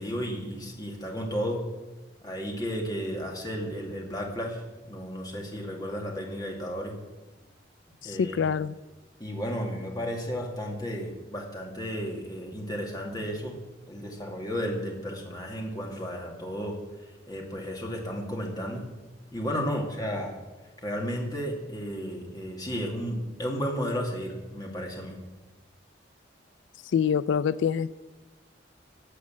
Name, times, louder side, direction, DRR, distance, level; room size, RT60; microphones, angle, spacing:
voice 1, 0.0-1.6 2.2-6.9 8.0-8.4 9.2-13.6 13.9-18.8 19.3-20.3 20.8-25.2, equal, 20° left, 0 dB, 2.4 m, -33 dB
voice 2, 8.0-8.7 26.8-27.9, left 7 dB, 85° left, 16 dB, 0.3 m, -26 dB
14.0 x 8.3 x 7.5 m, 1.2 s
head